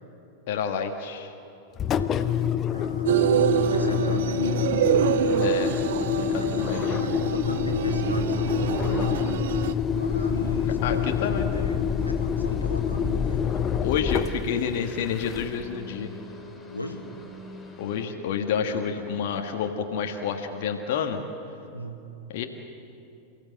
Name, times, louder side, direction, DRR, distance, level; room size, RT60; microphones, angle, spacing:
voice 1, 0.5-1.3 5.4-5.8 6.1-6.8 10.8-11.5 13.8-16.1 17.8-21.2 22.3-22.4, left 7 dB, 50° left, 4 dB, 1.6 m, -29 dB
Engine, 1.8-15.7, left 8 dB, 30° left, 0.8 m, -27 dB
voice 2, 2.3-5.0 6.4-9.3 9.9-13.5 16.7-17.1 18.6-19.4 21.7-22.0, left 1 dB, 85° left, 3 dB, 1.9 m, -37 dB
sound 1, 3.1-9.7, right 10 dB, 55° right, 0.7 m, -26 dB
sound 2, 3.2-18.1, right 1 dB, 10° left, 3.0 m, -44 dB
29.0 x 16.0 x 7.7 m, 2.7 s
figure-of-eight pair, 90°, 0 cm